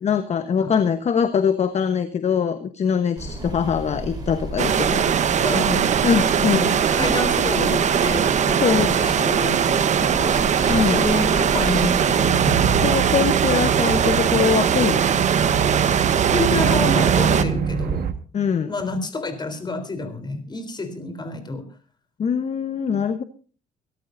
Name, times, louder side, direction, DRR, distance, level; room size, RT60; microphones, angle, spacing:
voice 1, 0.0-5.1 6.0-6.7 8.6-9.0 9.4-9.5 10.7-11.0 12.8-15.2 18.3-18.7 22.2-23.2, left 7 dB, 40° left, 10 dB, 1.2 m, -22 dB
sound 1, 3.2-12.2, right 2 dB, 25° right, 4.7 m, -32 dB
sound 2, 4.6-17.4, right 8 dB, 45° right, 1.1 m, -20 dB
voice 2, 5.4-6.0 6.3-10.4 10.7-12.7 16.3-18.1 18.7-21.7, left 2 dB, 25° left, 8 dB, 3.7 m, -28 dB
sound 3, 12.2-18.1, right 7 dB, 65° right, 1.5 m, -24 dB
24.5 x 13.5 x 2.7 m, 0.38 s
cardioid pair, 110°, 17 cm